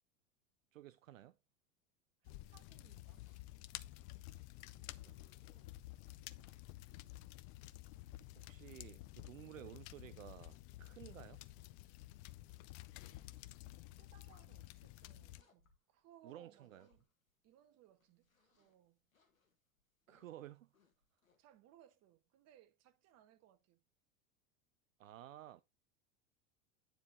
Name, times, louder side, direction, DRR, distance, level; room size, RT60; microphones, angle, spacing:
voice 1, 0.7-1.4 4.7-5.2 8.4-11.4 16.2-16.9 20.1-20.7 25.0-25.6, right 13 dB, 70° right, 0.5 m, -54 dB
sound 1, 2.2-15.4, left 17 dB, 40° left, 0.5 m, -52 dB
voice 2, 2.2-3.2 13.9-17.0 17.4-19.0 21.4-23.8, right 11 dB, 40° right, 1.2 m, -66 dB
sound 2, 3.0-5.7 6.3-10.7 11.3-13.7 14.1-14.7 15.4-17.5 17.9-21.6, left 4 dB, 80° left, 1.8 m, -75 dB
9.6 x 4.6 x 3.8 m
figure-of-eight pair, 80°, 41 cm